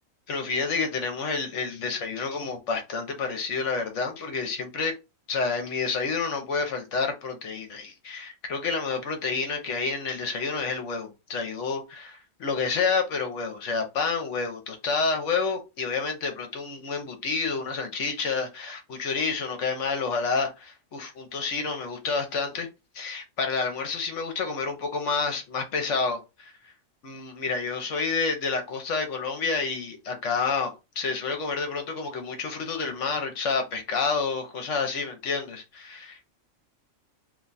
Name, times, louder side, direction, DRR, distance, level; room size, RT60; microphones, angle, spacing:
voice 1, 0.3-4.9 5.3-22.7 22.9-26.5 27.0-36.2, left 4 dB, 70° left, 1.0 m, -29 dB
2.8 x 2.3 x 3.9 m
omnidirectional pair, 1.4 m